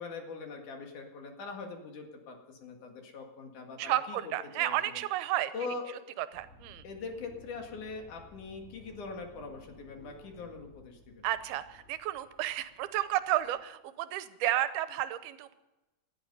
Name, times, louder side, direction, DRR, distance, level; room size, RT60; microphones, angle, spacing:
voice 1, 0.0-5.0 5.5-6.1 6.8-11.3, left 4 dB, 60° left, 3 dB, 3.1 m, -42 dB
voice 2, 3.8-5.5 6.2-6.8 11.2-15.5, right 14 dB, 85° right, 13 dB, 2.8 m, -32 dB
sound 1, 6.3-13.6, left 2 dB, 25° left, 1.4 m, -57 dB
19.0 x 12.0 x 5.5 m, 1.0 s
omnidirectional pair, 4.4 m